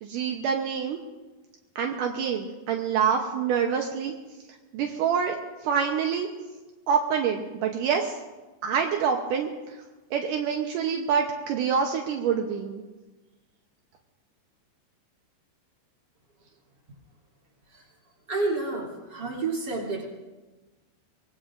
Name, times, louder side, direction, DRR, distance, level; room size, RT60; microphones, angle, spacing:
voice 1, 0.0-1.0 1.8-4.1 4.7-5.4 5.6-6.3 6.9-8.1 8.6-9.5 10.1-12.8, right 7 dB, 80° right, 3 dB, 1.9 m, -26 dB
voice 2, 18.3-20.1, right 3 dB, 25° right, -2 dB, 3.0 m, -29 dB
24.5 x 20.0 x 2.6 m, 1.2 s
omnidirectional pair, 5.0 m